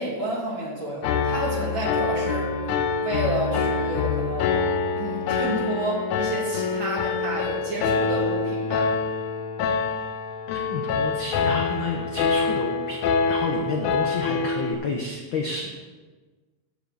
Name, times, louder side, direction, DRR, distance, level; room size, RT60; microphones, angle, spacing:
voice 1, 0.0-2.5 3.0-4.6 5.0-8.9, right 1 dB, 40° right, -4 dB, 3.0 m, -30 dB
Piano, 1.0-14.7, left 5 dB, 90° left, 2.2 m, -25 dB
voice 2, 10.5-13.0 13.3-15.7, left 3 dB, 70° left, 2 dB, 1.1 m, -30 dB
13.5 x 8.2 x 4.0 m, 1.3 s
omnidirectional pair, 3.4 m